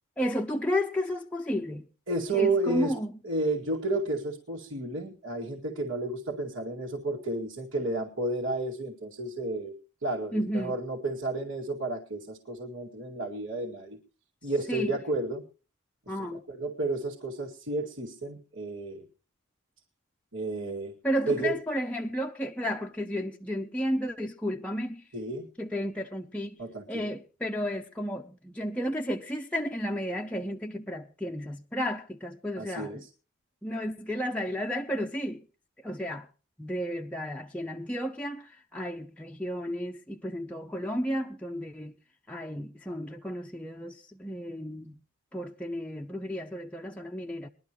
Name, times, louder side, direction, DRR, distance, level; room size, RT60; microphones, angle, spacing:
voice 1, 0.2-1.9 2.3-3.1 10.3-10.7 14.7-14.9 16.1-16.4 21.0-25.0 25.6-26.6 26.9-33.0 33.6-35.4 35.8-36.3 36.6-41.9 42.3-44.9 45.3-47.5, equal, 5° left, 0.6 m, -32 dB
voice 2, 2.1-3.0 3.2-9.8 10.0-14.0 14.4-15.4 16.2-19.1 20.3-20.9 21.3-21.6 25.1-25.5 26.6-27.1 32.6-33.1, right 2 dB, 70° right, 2.3 m, -31 dB
21.5 x 12.0 x 3.0 m
head